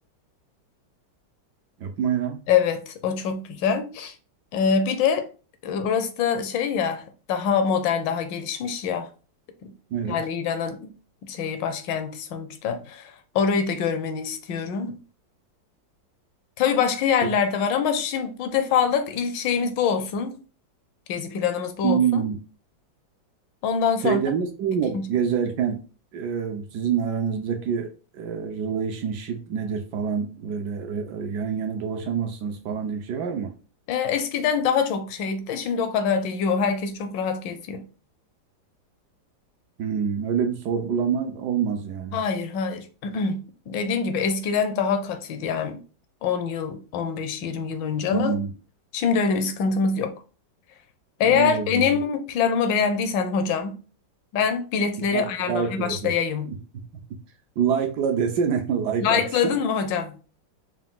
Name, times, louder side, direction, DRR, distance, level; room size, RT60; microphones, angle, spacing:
voice 1, 1.8-2.4 9.9-10.2 21.8-22.4 24.0-25.8 26.1-33.5 39.8-42.2 48.1-48.5 51.2-51.9 55.1-56.1 56.5-56.6 57.6-59.5, right 7 dB, 70° right, 1.1 m, -26 dB
voice 2, 2.5-4.1 4.5-5.3 5.6-9.1 9.6-9.7 10.1-10.9 11.2-15.0 16.6-20.4 21.1-22.3 23.6-24.2 24.9-25.1 33.9-37.8 42.1-45.8 46.2-48.3 48.9-50.1 51.2-53.8 54.3-56.5 59.0-60.2, left 6 dB, 75° left, 1.3 m, -25 dB
4.6 x 2.2 x 3.7 m
omnidirectional pair, 2.1 m